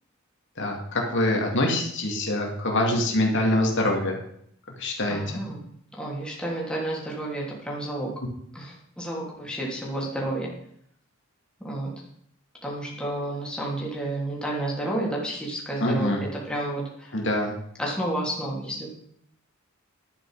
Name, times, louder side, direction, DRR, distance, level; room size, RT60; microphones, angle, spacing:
voice 1, 0.6-4.2 4.8-5.2 15.8-16.2 17.1-17.5, left 1 dB, 60° left, 0 dB, 2.4 m, -24 dB
voice 2, 5.1-5.6 5.9-8.1 8.5-10.5 11.6-11.9 12.6-17.1 17.8-18.9, right 1 dB, 5° left, -4 dB, 3.1 m, -31 dB
11.5 x 9.3 x 4.9 m, 0.69 s
head